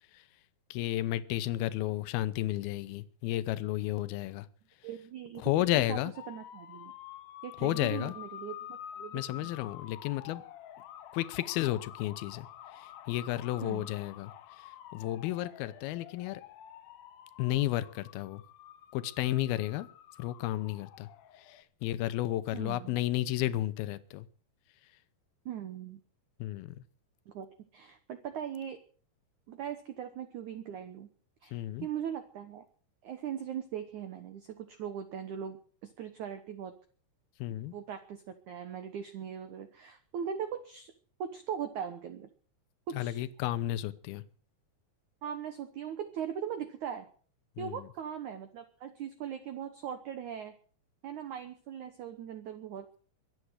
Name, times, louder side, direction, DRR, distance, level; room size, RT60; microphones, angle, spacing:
voice 1, 0.7-4.5 5.4-6.1 7.6-8.1 9.1-10.4 11.1-12.5 12.7-16.4 17.4-18.4 18.9-19.9 20.2-21.1 21.4-24.3 26.4-26.8 31.5-31.9 37.4-37.7 42.9-44.2 47.6-47.9, left 14 dB, 75° left, 14 dB, 2.5 m, -32 dB
voice 2, 4.8-5.5 5.9-6.0 6.3-6.9 7.4-9.5 13.6-13.9 22.5-23.0 25.5-26.0 27.3-27.5 27.7-28.8 29.5-31.1 31.4-32.6 33.0-35.6 35.8-36.8 37.7-40.9 41.2-42.3 42.9-43.2 45.2-47.1 47.6-50.5 51.0-52.9, right 8 dB, 75° right, 9 dB, 1.8 m, -40 dB
sound 1, 6.1-21.6, left 11 dB, 90° left, 1.8 m, -49 dB
23.0 x 8.6 x 6.4 m, 0.44 s
omnidirectional pair, 5.1 m